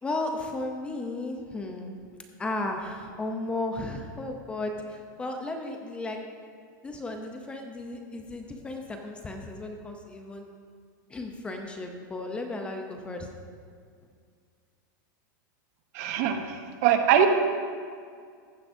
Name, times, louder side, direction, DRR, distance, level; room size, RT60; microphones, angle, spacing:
voice 1, 0.0-2.0 2.4-6.2 6.8-10.5 11.1-13.3, left 2 dB, 10° left, 4 dB, 0.5 m, -34 dB
voice 2, 15.9-17.3, right 9 dB, 45° right, 6 dB, 0.8 m, -23 dB
15.0 x 9.7 x 2.6 m, 2.1 s
supercardioid pair, 165°, 11 cm